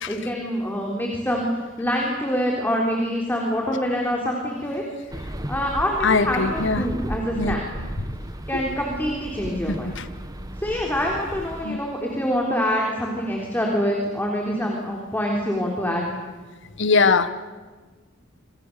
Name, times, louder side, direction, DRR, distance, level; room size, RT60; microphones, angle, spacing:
voice 1, 0.1-4.8 5.5-7.7 8.5-10.0 10.6-16.1, equal, 10° left, -1 dB, 3.6 m, -25 dB
sound 1, 5.1-11.7, right 1 dB, 20° right, 1.3 m, -34 dB
voice 2, 6.0-6.9 7.4-7.6 8.1-8.2 8.5-8.6 9.7-10.1 11.6-11.8 16.8-17.3, left 4 dB, 65° left, 11 dB, 1.4 m, -21 dB
27.0 x 26.0 x 6.9 m, 1.3 s
head